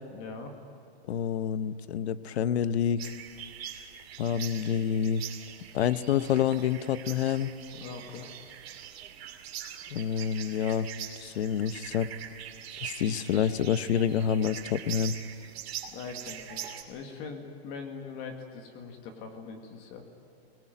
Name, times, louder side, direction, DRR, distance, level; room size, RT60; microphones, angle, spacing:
voice 1, 0.1-0.6 7.7-8.3 15.9-20.0, left 5 dB, 30° left, 4 dB, 2.0 m, -42 dB
voice 2, 1.1-3.1 4.2-5.2 5.7-7.5 9.9-10.9 11.2-12.1 12.8-15.2, left 8 dB, 80° left, 14 dB, 1.0 m, -28 dB
sound 1, 3.0-16.8, right 9 dB, 70° right, 2.6 m, -43 dB
23.0 x 18.5 x 9.2 m, 2.4 s
supercardioid pair, 170°, 32 cm